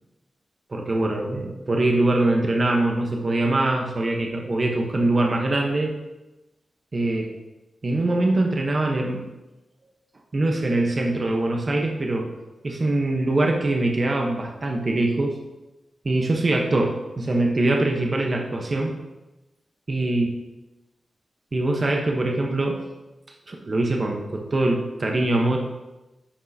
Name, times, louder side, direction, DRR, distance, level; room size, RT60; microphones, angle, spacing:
voice 1, 0.7-5.9 6.9-7.3 7.8-9.3 10.3-12.3 12.6-15.4 16.0-19.0 19.9-20.3 21.5-22.8 23.5-25.6, right 2 dB, 40° right, 1 dB, 1.0 m, -23 dB
9.9 x 5.4 x 2.8 m, 1.0 s
cardioid pair, 75°, 0 cm